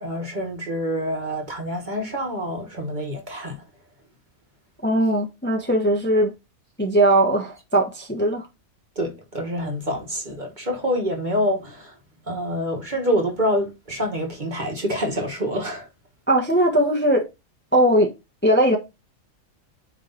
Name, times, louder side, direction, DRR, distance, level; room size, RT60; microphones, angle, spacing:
voice 1, 0.0-3.6 9.0-11.9 12.3-15.9, equal, 35° right, 1.5 m, -26 dB
voice 2, 4.8-6.3 6.8-8.5 16.3-17.3 17.7-18.1 18.4-18.8, right 1 dB, 10° left, 1.0 m, -19 dB
9.3 x 3.2 x 3.9 m
omnidirectional pair, 1.5 m